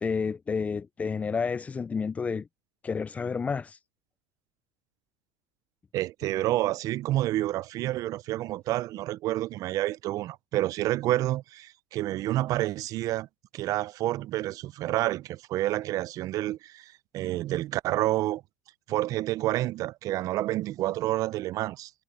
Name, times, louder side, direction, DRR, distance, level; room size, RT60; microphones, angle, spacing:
voice 1, 0.0-2.5 2.8-3.8, left 5 dB, 20° left, 0.4 m, -30 dB
voice 2, 5.9-13.3 13.5-18.4 18.9-21.9, right 15 dB, 45° right, 0.5 m, -29 dB
supercardioid pair, 115°, 8 cm